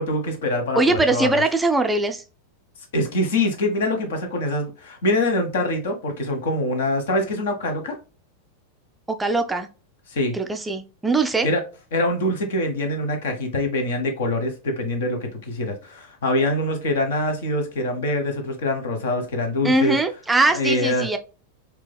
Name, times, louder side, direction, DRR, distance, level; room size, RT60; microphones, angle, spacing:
voice 1, 0.0-1.4 2.9-7.9 10.1-10.4 11.4-11.6 11.9-20.0 20.5-21.1, left 1 dB, 60° left, 1.0 m, -24 dB
voice 2, 0.8-2.2 9.1-9.7 10.3-11.5 19.6-21.2, right 2 dB, 10° right, 0.4 m, -21 dB
4.6 x 2.8 x 2.2 m
figure-of-eight pair, 90°, 0 cm